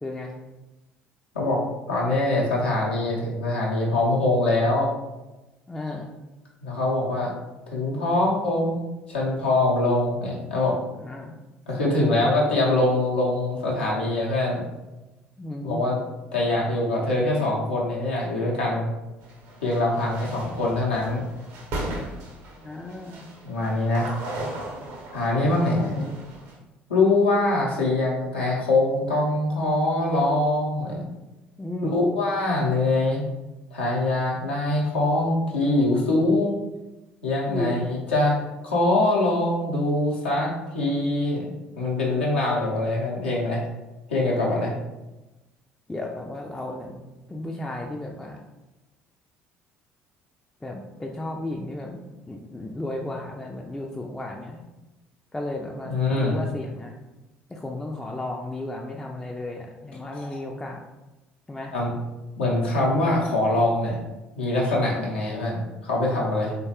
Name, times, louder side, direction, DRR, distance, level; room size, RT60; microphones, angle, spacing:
voice 1, 0.0-0.3 5.7-6.1 11.0-11.4 15.4-15.8 22.6-23.3 31.6-32.0 37.5-37.9 45.9-47.0 47.3-48.4 50.6-54.7 55.3-57.0 57.5-60.8 61.5-61.7, left 1 dB, 10° left, 0 dB, 0.3 m, -34 dB
voice 2, 1.9-4.9 6.6-7.3 7.7-8.8 9.1-10.8 11.7-14.6 15.6-16.0 16.3-18.9 19.6-21.2 23.4-24.1 25.1-26.0 26.9-31.1 31.9-33.2 33.7-36.6 37.2-38.4 38.6-41.5 41.8-43.6 44.1-44.7 55.9-56.4 60.1-60.4 61.7-61.9 62.4-63.9 64.4-66.5, left 2 dB, 80° left, -4 dB, 0.6 m, -23 dB
sound 1, 19.2-26.6, right 1 dB, 65° right, 0.6 m, -37 dB
3.0 x 2.2 x 2.8 m, 1.0 s
figure-of-eight pair, 55°, 6 cm